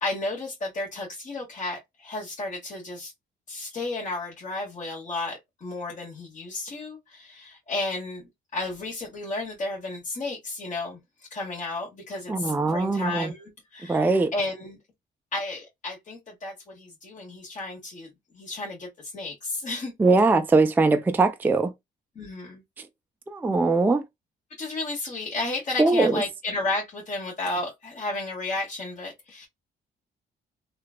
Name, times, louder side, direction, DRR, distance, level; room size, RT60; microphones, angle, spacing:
voice 1, 0.0-3.1 3.5-8.3 8.5-11.0 11.3-14.8 15.3-19.9 22.1-22.6 24.6-29.5, left 2 dB, 40° left, 1.3 m, -33 dB
voice 2, 12.3-13.3 13.9-14.3 20.0-21.7 22.8-22.9 23.3-24.0 25.8-26.2, right 3 dB, 10° right, 0.4 m, -21 dB
3.1 x 2.4 x 2.4 m
cardioid pair, 90°, 20 cm